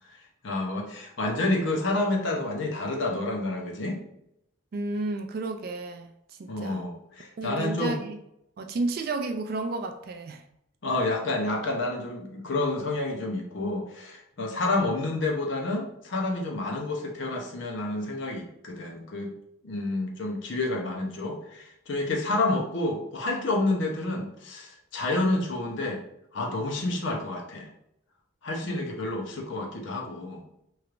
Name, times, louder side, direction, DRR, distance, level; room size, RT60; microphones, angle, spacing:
voice 1, 0.4-4.0 6.5-8.0 10.8-19.3 19.6-26.0 26.3-27.7 28.4-30.4, left 2 dB, 65° left, 1 dB, 0.6 m, -29 dB
voice 2, 4.7-6.1 6.4-6.9 7.4-8.2 8.6-10.4 28.6-29.0, right 2 dB, 45° right, 5 dB, 0.3 m, -32 dB
3.1 x 3.0 x 2.4 m, 0.78 s
head